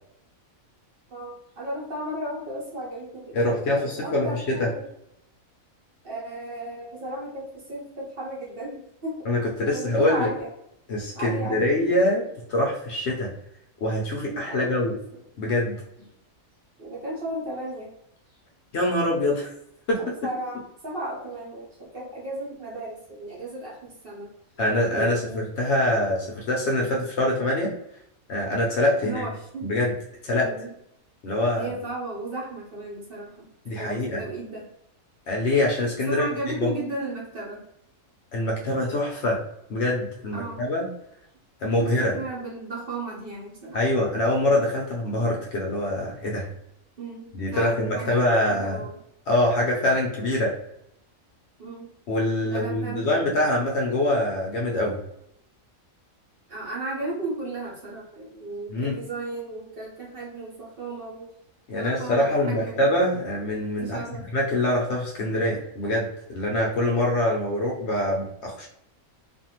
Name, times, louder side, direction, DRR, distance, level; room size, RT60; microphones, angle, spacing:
voice 1, 1.1-4.9 6.0-9.2 9.6-10.5 11.1-12.1 14.5-14.7 15.1-15.2 16.8-17.9 20.0-24.3 24.9-25.5 29.0-29.8 30.3-30.7 31.5-34.7 36.1-37.6 40.3-40.6 41.8-43.8 47.0-49.0 51.6-51.9 52.4-53.3 56.5-61.3 61.7-62.9 63.8-64.2, right 2 dB, 45° right, -4 dB, 0.9 m, -35 dB
voice 2, 3.3-4.7 9.2-10.3 10.9-12.2 12.5-13.3 13.8-15.0 15.4-15.8 18.7-19.5 19.9-20.0 24.6-27.7 28.3-29.2 29.6-29.9 30.2-30.5 31.2-31.7 33.7-34.2 35.3-36.7 38.3-39.4 39.7-40.9 41.6-42.2 43.7-46.5 47.3-48.9 49.3-50.6 52.1-55.0 58.7-59.0 61.7-64.0 64.3-68.7, left 1 dB, 60° left, -2 dB, 0.8 m, -24 dB
2.6 x 2.5 x 2.8 m, 0.76 s
omnidirectional pair, 1.4 m